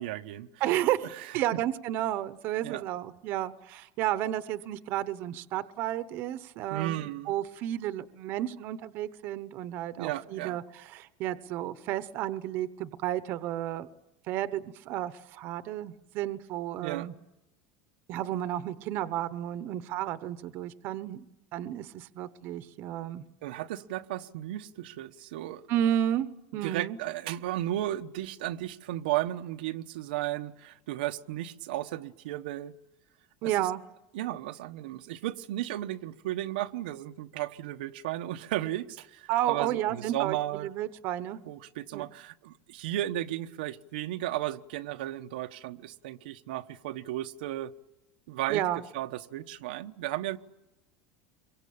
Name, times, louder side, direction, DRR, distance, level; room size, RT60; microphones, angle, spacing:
voice 1, 0.0-0.5 1.2-1.3 2.6-2.8 6.7-7.3 10.0-10.6 16.8-17.1 23.4-25.6 26.6-32.8 33.4-33.7 34.1-40.7 41.4-47.7 48.3-48.6 48.9-50.4, right 14 dB, 90° right, 1.1 m, -34 dB
voice 2, 0.6-13.9 14.3-17.1 18.1-21.2 21.5-23.2 25.7-26.3 26.5-27.0 33.4-33.8 39.3-41.4 41.9-42.1 48.5-48.8, right 12 dB, 45° right, 1.0 m, -32 dB
26.5 x 23.5 x 8.7 m
supercardioid pair, 165°, 5 cm